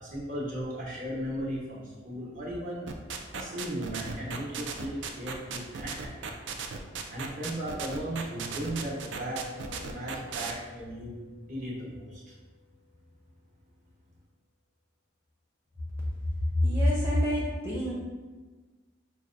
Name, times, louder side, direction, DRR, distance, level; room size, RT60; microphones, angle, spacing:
voice 1, 0.0-2.9 3.3-6.3 7.1-11.2 11.5-12.2, right 1 dB, 45° right, -5 dB, 1.0 m, -36 dB
sound 1, 2.9-10.5, right 6 dB, 65° right, 0.4 m, -36 dB
Mallet percussion, 9.2-13.0, left 7 dB, 70° left, 0.3 m, -52 dB
voice 2, 16.6-17.9, left 1 dB, 10° right, -7 dB, 0.6 m, -26 dB
5.8 x 2.2 x 2.5 m, 1.3 s
head